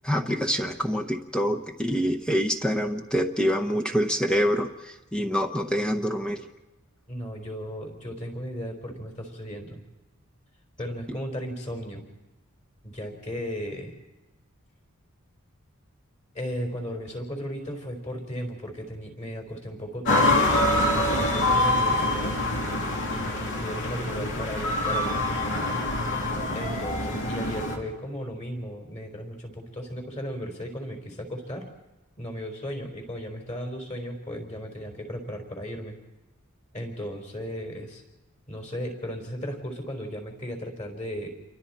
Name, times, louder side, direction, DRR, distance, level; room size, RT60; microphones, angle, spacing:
voice 1, 0.0-6.4, equal, 5° left, 2 dB, 0.9 m, -26 dB
voice 2, 7.1-9.8 10.8-12.1 12.8-14.0 16.3-20.5 20.9-22.4 23.1-25.3 26.5-31.7 32.2-36.0 36.7-38.0 38.5-41.3, equal, 30° left, 3 dB, 4.2 m, -35 dB
sound 1, 20.1-27.8, left 1 dB, 55° left, 3.0 m, -25 dB
28.5 x 23.5 x 4.3 m, 1.1 s
head